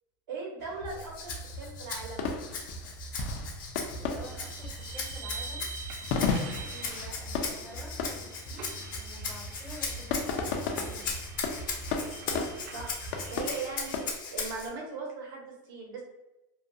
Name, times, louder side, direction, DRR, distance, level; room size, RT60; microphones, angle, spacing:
voice 1, 0.3-2.3 6.7-7.0 12.7-16.0, right 4 dB, 85° right, -1 dB, 0.9 m, -39 dB
sound 1, 0.6-14.0, left 3 dB, 50° left, 0.4 m, -36 dB
Rattle (instrument), 0.9-14.7, left 5 dB, 80° left, 0.8 m, -39 dB
voice 2, 4.0-5.7 6.8-11.2, equal, 10° right, -4 dB, 0.5 m, -49 dB
sound 2, 4.2-14.1, right 5 dB, 65° right, 0.4 m, -46 dB
2.4 x 2.2 x 2.6 m, 0.98 s
supercardioid pair, 175°, 11 cm